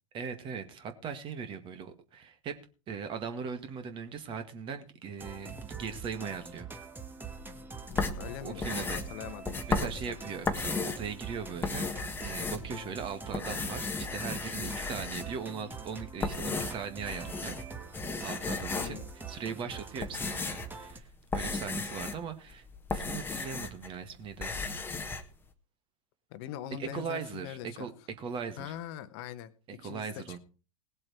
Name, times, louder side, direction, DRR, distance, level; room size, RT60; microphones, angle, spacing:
voice 1, 0.1-2.6 2.9-6.7 8.4-9.0 9.7-11.8 12.2-17.9 18.2-19.0 19.3-22.7 22.9-24.6 26.8-27.9 28.2-28.8 29.7-30.4, right 6 dB, 30° right, 1.9 m, -39 dB
sound 1, 5.2-21.0, right 5 dB, 10° right, 1.4 m, -44 dB
voice 2, 7.9-10.2 12.7-13.0 18.8-19.1 26.3-27.9 28.6-30.4, left 12 dB, 45° left, 1.2 m, -43 dB
sound 2, 7.9-11.1 11.5-13.0 13.3-15.5 16.0-17.7 17.9-19.1 19.7-23.9 24.2-25.2, left 4 dB, 10° left, 1.4 m, -35 dB
19.0 x 7.6 x 4.6 m
figure-of-eight pair, 95°, 18 cm